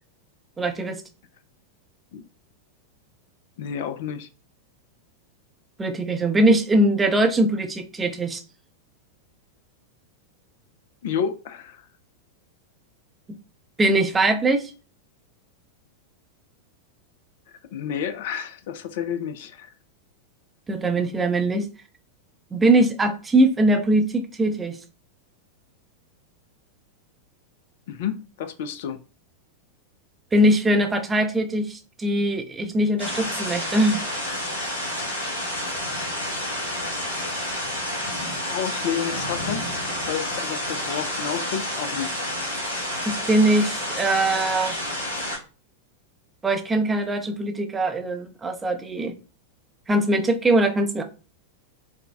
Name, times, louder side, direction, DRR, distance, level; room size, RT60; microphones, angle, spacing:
voice 1, 0.6-1.0 5.8-8.4 13.8-14.7 20.7-21.7 22.5-24.8 30.3-34.0 43.1-44.8 46.4-49.1 49.9-51.0, right 1 dB, 15° right, 0.4 m, -21 dB
voice 2, 3.6-4.3 11.0-11.9 17.7-19.7 27.9-29.0 38.5-42.2, left 8 dB, 55° left, 0.3 m, -30 dB
sound 1, 33.0-45.4, left 1 dB, 75° left, 1.1 m, -29 dB
4.4 x 2.0 x 2.2 m
figure-of-eight pair, 90°, 0 cm